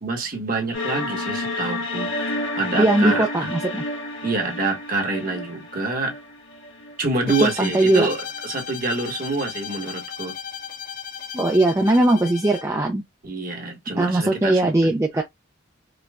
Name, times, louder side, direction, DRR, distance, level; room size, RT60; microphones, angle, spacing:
voice 1, 0.0-2.1 2.6-3.5 4.2-6.2 7.0-10.3 13.2-14.9 15.1-15.2, right 3 dB, 40° right, 1.2 m, -26 dB
sound 1, 0.7-7.7, left 1 dB, 70° left, 1.3 m, -30 dB
voice 2, 2.8-3.8 7.4-8.1 11.3-13.0 13.9-15.2, right 1 dB, 15° right, 0.4 m, -19 dB
Bowed string instrument, 7.3-12.7, left 8 dB, 40° left, 0.5 m, -35 dB
5.1 x 2.2 x 2.3 m
head